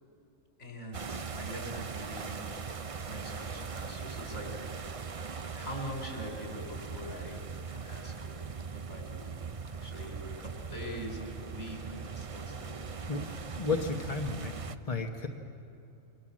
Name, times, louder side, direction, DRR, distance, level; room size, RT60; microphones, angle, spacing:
voice 1, 0.6-4.9 5.2-7.4 7.7-13.3, equal, 55° left, 1 dB, 5.5 m, -44 dB
sound 1, 0.9-14.8, right 5 dB, 35° right, 0.5 m, -40 dB
voice 2, 13.1-14.5 14.9-15.3, left 3 dB, 30° left, 1 dB, 1.3 m, -33 dB
28.0 x 24.5 x 7.6 m, 2.8 s
omnidirectional pair, 1.4 m